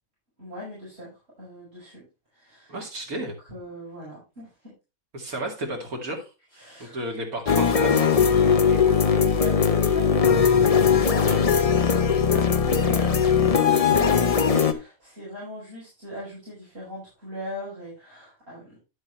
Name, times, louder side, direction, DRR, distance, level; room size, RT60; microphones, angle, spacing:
voice 1, 0.4-1.1 1.4-2.1 2.3-2.8 3.1-4.7 6.5-7.1 9.0-11.6 12.3-18.8, equal, 45° right, -8 dB, 5.6 m, -39 dB
voice 2, 2.7-3.3 5.1-6.3 6.8-8.1 8.5-9.0, right 1 dB, 85° right, 1 dB, 2.8 m, -33 dB
sound 1, 7.5-14.7, left 6 dB, 35° left, 0.6 m, -20 dB
10.5 x 8.0 x 3.1 m, 0.28 s
omnidirectional pair, 1.5 m